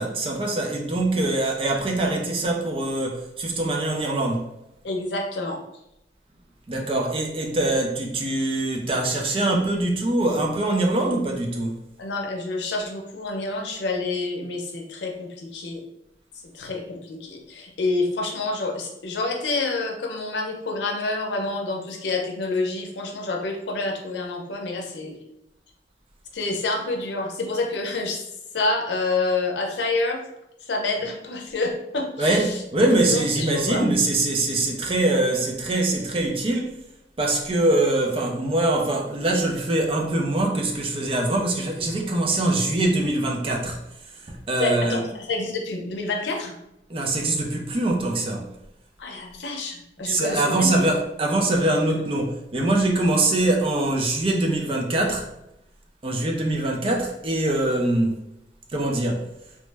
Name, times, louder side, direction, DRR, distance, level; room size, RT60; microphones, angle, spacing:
voice 1, 0.0-4.5 6.7-11.8 32.2-36.7 37.2-43.8 44.3-45.1 46.9-48.5 50.1-55.3 56.0-58.2 58.7-59.3, right 2 dB, 30° right, 0.4 m, -23 dB
voice 2, 4.8-5.6 12.0-15.8 16.5-25.2 26.3-28.2 28.5-30.2 30.6-32.6 33.1-33.9 44.6-46.6 49.0-50.9, left 3 dB, 85° left, 0.6 m, -28 dB
3.0 x 2.1 x 3.3 m
head